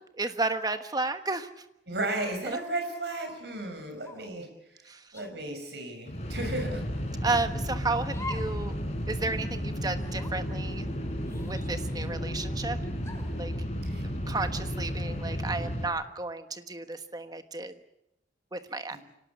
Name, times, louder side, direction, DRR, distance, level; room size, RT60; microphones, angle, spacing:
voice 1, 0.2-1.5 2.4-2.6 4.9-5.0 7.2-8.7 9.1-10.9 11.4-12.8 13.4-13.5 14.3-17.7 18.5-19.0, right 3 dB, 20° right, 9 dB, 1.3 m, -32 dB
voice 2, 1.9-6.8 13.8-14.1 18.9-19.0, right 2 dB, 65° right, 5 dB, 5.8 m, -35 dB
sound 1, 4.0-4.4 5.1-5.3 6.3-6.8 8.1-8.6 9.0-9.1 9.9-10.4 11.3-12.2 13.0-13.4, left 2 dB, 15° left, 2.6 m, -44 dB
sound 2, 6.1-15.9, equal, 40° left, 4.3 m, -33 dB
25.0 x 18.0 x 8.5 m, 0.86 s
head